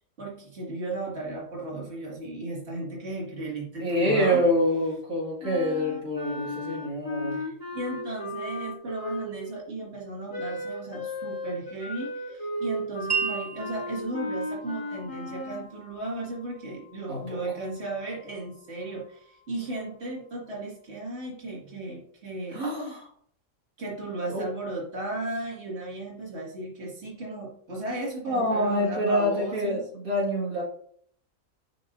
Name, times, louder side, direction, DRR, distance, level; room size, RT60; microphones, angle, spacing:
voice 1, 0.2-4.4 7.3-22.6 23.8-29.8, right 2 dB, 50° right, -4 dB, 2.5 m, -35 dB
voice 2, 3.8-7.4 17.1-17.4 22.5-23.1 24.3-24.4 28.2-30.6, equal, 85° right, -5 dB, 2.6 m, -26 dB
Wind instrument woodwind instrument, 5.4-9.6 10.3-15.7, left 1 dB, 15° left, 2.3 m, -35 dB
Wind chime, 13.1-20.7, right 6 dB, 25° right, 0.5 m, -38 dB
10.5 x 5.7 x 2.7 m, 0.63 s
omnidirectional pair, 1.4 m